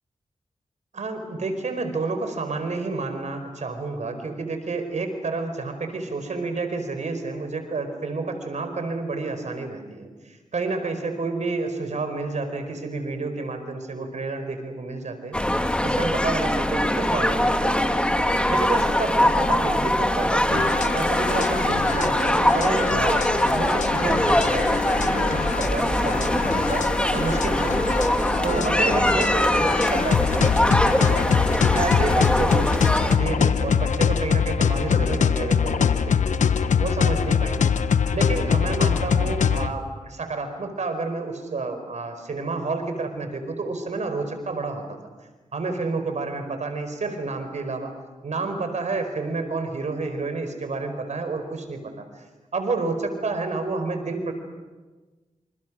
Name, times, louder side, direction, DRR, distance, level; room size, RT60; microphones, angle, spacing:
voice 1, 0.9-10.1 10.5-15.4 15.8-18.1 18.5-28.0 28.4-36.4 36.8-37.7 38.1-45.0 45.5-47.9 48.2-52.3 52.5-54.3, right 3 dB, 70° right, 7 dB, 4.7 m, -30 dB
sound 1, 15.3-33.2, left 1 dB, 10° left, 2.5 m, -22 dB
sound 2, 20.5-39.7, left 6 dB, 80° left, 1.1 m, -24 dB
27.5 x 27.0 x 6.3 m, 1.3 s
cardioid pair, 50°, 12 cm